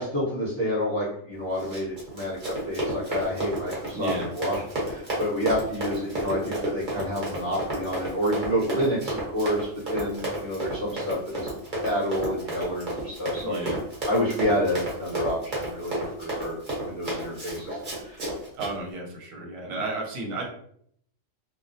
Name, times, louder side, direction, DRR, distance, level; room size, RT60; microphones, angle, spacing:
voice 1, 0.0-11.5 11.8-13.6 14.1-16.6 16.8-17.8 18.0-18.2, equal, 20° left, -9 dB, 0.9 m, -29 dB
Run, 1.5-18.7, right 1 dB, 40° right, 1.0 m, -32 dB
voice 2, 3.9-4.3 13.4-13.8 18.5-20.4, right 2 dB, 80° right, -1 dB, 1.0 m, -33 dB
2.3 x 2.1 x 2.6 m, 0.66 s
omnidirectional pair, 1.4 m